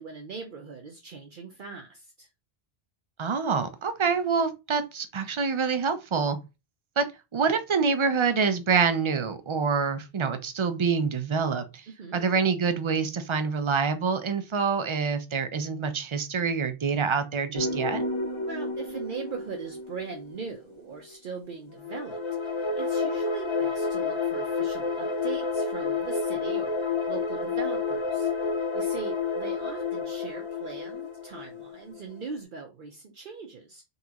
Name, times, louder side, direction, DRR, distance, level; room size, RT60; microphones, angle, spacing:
voice 1, 0.0-2.3 12.0-12.2 18.5-28.3 28.7-33.8, right 5 dB, 60° right, 0.8 m, -40 dB
voice 2, 3.2-6.4 7.0-7.1 7.3-11.8 12.1-18.0, right 5 dB, 40° right, 0.5 m, -26 dB
sound 1, 17.6-21.2 21.7-32.4, left 4 dB, 35° left, 0.5 m, -30 dB
4.0 x 3.6 x 2.8 m
omnidirectional pair, 1.0 m